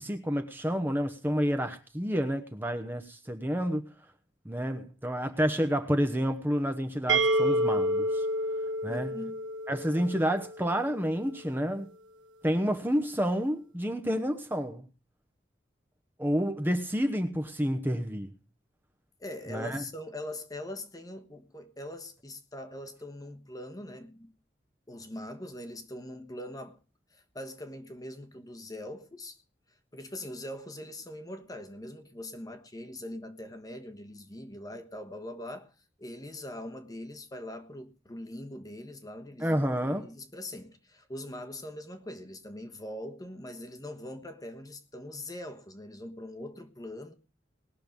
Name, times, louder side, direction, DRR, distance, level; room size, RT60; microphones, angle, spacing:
voice 1, 0.0-3.8 4.4-8.3 8.8-9.2 9.7-11.9 12.4-14.9 16.2-18.3 19.5-19.8 39.4-40.1, equal, 10° right, 1.0 m, -29 dB
sound 1, 7.1-10.8, right 1 dB, 85° right, 1.6 m, -29 dB
voice 2, 8.9-9.4 19.2-24.3 24.9-26.8 27.1-29.4 29.9-35.7 36.0-39.6 39.9-47.1, left 1 dB, 20° left, 1.3 m, -42 dB
20.0 x 6.7 x 5.3 m
head